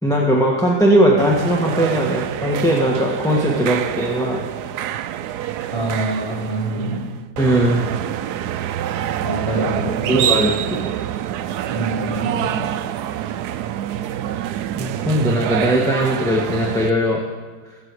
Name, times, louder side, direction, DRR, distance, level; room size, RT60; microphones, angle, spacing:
voice 1, 0.0-4.4 7.4-7.8 10.1-10.8 14.7-17.2, right 1 dB, ahead, -2 dB, 1.4 m, -19 dB
sound 1, 1.2-16.9, right 11 dB, 70° right, 1.1 m, -26 dB
voice 2, 5.7-7.1 9.2-10.2 11.7-12.6, right 2 dB, 15° right, -5 dB, 3.8 m, -25 dB
22.5 x 8.5 x 4.8 m, 1.5 s
omnidirectional pair, 1.9 m